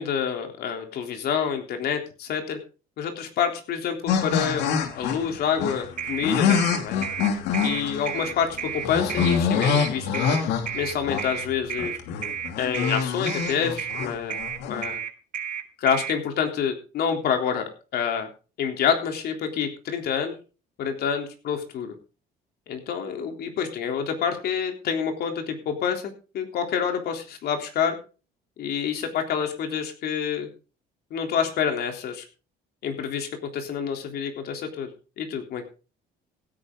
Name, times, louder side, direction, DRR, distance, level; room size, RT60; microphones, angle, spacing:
voice 1, 0.0-2.6 3.0-7.1 7.6-10.4 10.7-12.0 12.6-14.3 14.6-15.0 15.8-18.3 18.6-20.3 20.8-21.9 22.7-28.0 28.6-30.5 31.1-32.2 32.8-34.9 35.2-35.7, left 7 dB, 70° left, 4 dB, 3.5 m, -27 dB
sound 1, 4.1-14.8, left 6 dB, 90° left, 2.6 m, -26 dB
sound 2, 6.0-16.2, right 8 dB, 50° right, 2.1 m, -32 dB
16.0 x 9.9 x 3.9 m, 0.34 s
cardioid pair, 110°, 17 cm